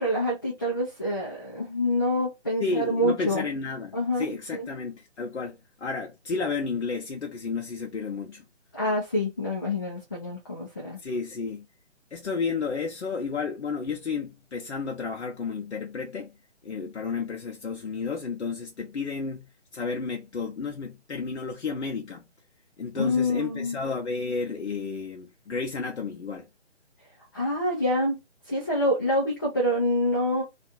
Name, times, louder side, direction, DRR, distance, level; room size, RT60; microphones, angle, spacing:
voice 1, 0.0-3.4 3.9-4.7 8.7-11.0 22.9-23.8 27.3-28.2 28.5-30.4, left 1 dB, 20° left, 0.5 m, -26 dB
voice 2, 2.6-8.4 11.0-11.7 12.1-16.3 16.6-22.2 22.8-26.5, left 4 dB, 75° left, 0.7 m, -32 dB
2.4 x 2.4 x 2.6 m
figure-of-eight pair, 150°, 35 cm